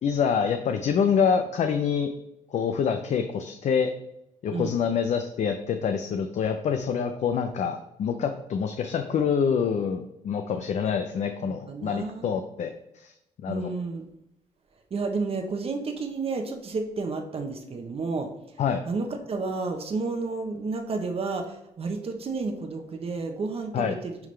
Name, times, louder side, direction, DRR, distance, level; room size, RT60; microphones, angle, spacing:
voice 1, 0.0-2.1 2.5-3.9 4.4-12.7 13.0-13.1 13.4-13.7 18.6-18.8 23.7-24.0, left 7 dB, 55° left, 7 dB, 0.6 m, -26 dB
voice 2, 11.5-12.3 13.5-14.0 14.9-18.3 18.8-24.2, right 3 dB, 45° right, 4 dB, 1.0 m, -31 dB
10.5 x 3.7 x 3.3 m, 0.85 s
cardioid pair, 90°, 14 cm